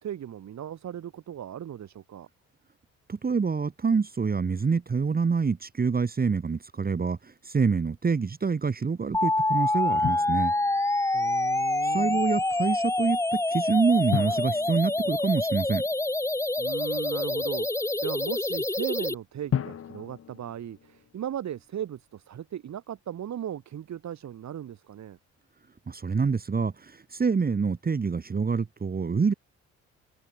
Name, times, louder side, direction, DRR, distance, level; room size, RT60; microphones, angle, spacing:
voice 1, 0.0-2.3 11.1-12.2 16.6-25.2, right 10 dB, 65° right, 4.8 m, -37 dB
voice 2, 3.1-10.5 11.8-15.8 25.9-29.3, right 5 dB, 30° right, 2.1 m, -26 dB
sound 1, 9.1-19.1, left 2 dB, 10° left, 1.1 m, -26 dB
Drum, 10.0-11.1 14.1-16.0 19.5-21.5, left 9 dB, 50° left, 1.5 m, -35 dB
open air
cardioid pair, 90°, 30 cm